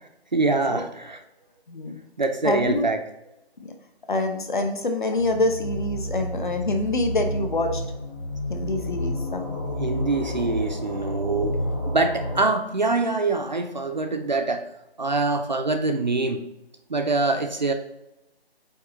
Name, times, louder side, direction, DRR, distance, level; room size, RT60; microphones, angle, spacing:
voice 1, 0.3-1.2 2.2-3.0 9.8-14.7 15.0-16.4 16.9-17.7, right 3 dB, 45° right, 6 dB, 0.5 m, -24 dB
voice 2, 2.4-2.9 3.6-3.7 4.1-7.8 8.5-9.5, left 2 dB, 50° left, 6 dB, 0.9 m, -26 dB
sound 1, 5.2-12.4, equal, 20° left, 1.1 m, -30 dB
8.4 x 2.9 x 4.2 m, 0.88 s
figure-of-eight pair, 175°, 31 cm